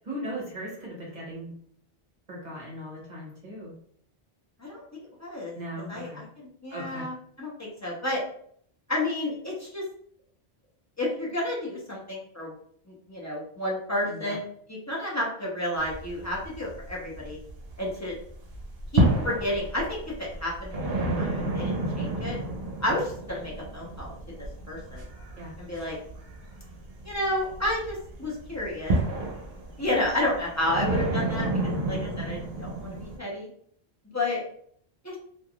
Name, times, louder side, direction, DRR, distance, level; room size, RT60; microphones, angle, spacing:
voice 1, 0.1-1.5 2.3-3.7 5.5-6.2 6.7-7.1 14.0-14.4 25.4-25.5 31.5-32.0, equal, 45° right, -5 dB, 1.1 m, -38 dB
voice 2, 5.2-5.5 5.9-6.3 6.6-8.2 8.9-9.8 11.0-12.5 12.9-14.4 14.9-17.4 17.8-18.1 18.9-22.4 22.8-24.1 24.7-25.0 25.6-26.0 27.0-29.0 29.8-31.5 31.9-33.5 34.1-34.4 35.0-35.2, left 1 dB, 20° left, -4 dB, 0.6 m, -31 dB
sound 1, 15.8-17.9 18.3-33.2, right 2 dB, 65° right, 0.9 m, -30 dB
3.3 x 2.4 x 2.3 m, 0.63 s
omnidirectional pair, 1.1 m